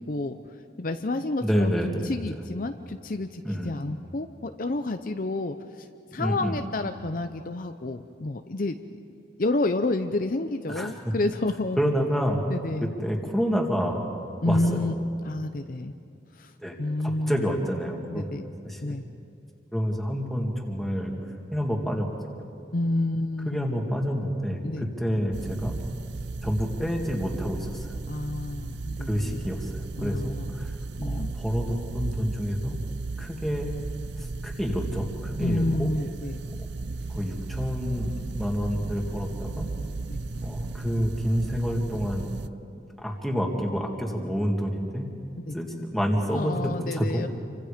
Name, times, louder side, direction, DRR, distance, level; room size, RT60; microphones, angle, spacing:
voice 1, 0.1-0.4 0.8-1.7 2.0-5.9 6.1-8.8 9.4-11.8 12.5-12.9 14.4-14.9 15.2-15.9 16.4-16.5 16.8-17.4 18.1-18.4 18.8-19.0 22.7-23.5 24.6-24.9 28.1-29.4 30.0-30.5 31.0-31.3 35.4-36.3 40.1-40.2 45.5-45.6 46.3-47.3, left 2 dB, 50° left, 7 dB, 0.6 m, -29 dB
voice 2, 1.4-2.4 3.4-3.7 6.2-6.6 10.7-10.9 11.8-12.4 13.0-14.0 14.4-14.9 16.6-16.8 17.3-18.3 18.6-19.0 19.7-21.1 21.5-22.1 23.5-25.7 26.4-28.0 29.1-30.7 31.0-32.8 33.2-33.9 34.2-35.9 37.1-39.7 40.4-42.3 43.0-45.1 45.5-47.2, equal, ahead, 0 dB, 2.3 m, -28 dB
sound 1, 25.3-42.5, right 3 dB, 70° right, 0.6 m, -35 dB
28.5 x 25.0 x 5.1 m, 2.6 s
head